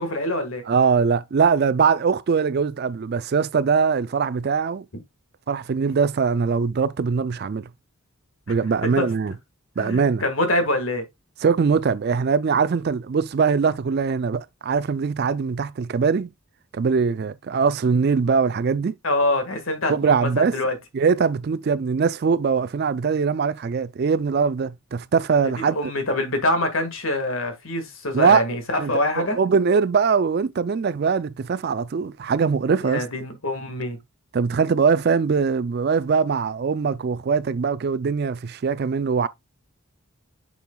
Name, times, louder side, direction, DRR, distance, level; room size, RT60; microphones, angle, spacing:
voice 1, 0.0-0.6 8.8-9.0 9.8-11.0 19.0-20.7 25.4-29.4 32.8-34.0, left 1 dB, 65° left, 1.7 m, -25 dB
voice 2, 0.7-4.9 5.5-7.6 8.5-9.3 9.8-10.2 11.4-16.3 16.7-19.0 19.9-20.6 20.9-25.8 28.1-28.5 28.8-28.9 29.2-33.0 34.3-39.3, right 5 dB, 45° right, 0.3 m, -22 dB
6.8 x 6.3 x 2.3 m
head